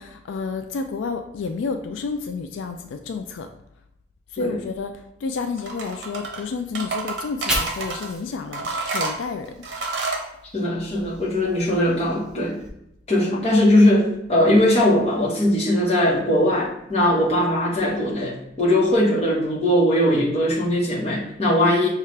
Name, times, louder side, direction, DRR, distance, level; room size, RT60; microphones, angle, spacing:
voice 1, 0.0-3.5 4.3-9.6, left 4 dB, 90° left, 6 dB, 0.3 m, -30 dB
sound 1, 5.6-6.4 6.7-8.1 8.5-10.3, right 3 dB, 70° right, 0.7 m, -29 dB
Fire, 7.1-10.3 10.6-12.7, right 1 dB, 5° right, 0.6 m, -35 dB
voice 2, 10.5-12.6 13.1-21.9, left 1 dB, 35° left, -5 dB, 1.1 m, -20 dB
5.5 x 2.4 x 3.2 m, 0.81 s
head